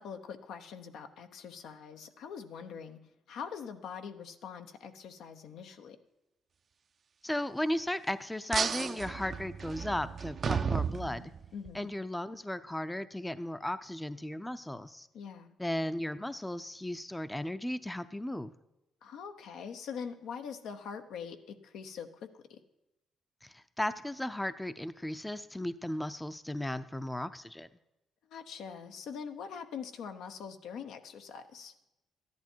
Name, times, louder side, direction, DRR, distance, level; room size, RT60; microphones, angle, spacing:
voice 1, 0.0-3.0 3.3-6.0 11.5-11.9 15.1-15.6 19.0-22.6 28.3-31.7, left 6 dB, 80° left, 7 dB, 0.9 m, -43 dB
voice 2, 7.2-11.2 11.7-15.1 15.6-18.5 23.4-27.7, left 1 dB, 10° left, 13 dB, 0.5 m, -35 dB
sound 1, 8.5-11.7, right 6 dB, 50° right, 0.5 m, -33 dB
13.5 x 11.0 x 4.5 m, 0.93 s
cardioid pair, 90°, 0 cm